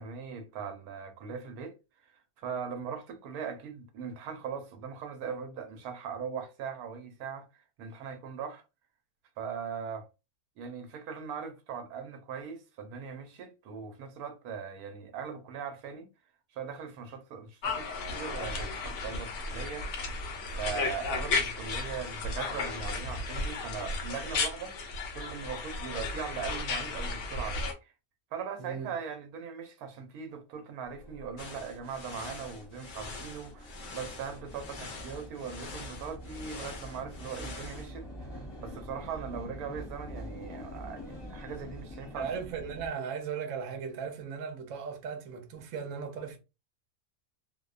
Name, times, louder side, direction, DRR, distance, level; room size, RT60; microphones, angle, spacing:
voice 1, 0.0-1.8 2.0-8.6 9.4-10.1 10.6-16.1 16.5-19.9 20.5-24.7 25.1-27.9 28.3-42.3, right 6 dB, 85° right, 1.1 m, -40 dB
sound 1, 17.6-27.7, left 3 dB, 65° left, 0.8 m, -34 dB
voice 2, 28.6-28.9 42.1-46.4, right 6 dB, 65° right, 0.9 m, -37 dB
sound 2, 30.8-42.9, equal, 20° left, 0.8 m, -45 dB
sound 3, 31.4-37.9, left 3 dB, 80° left, 0.4 m, -45 dB
2.6 x 2.1 x 2.3 m
omnidirectional pair, 1.5 m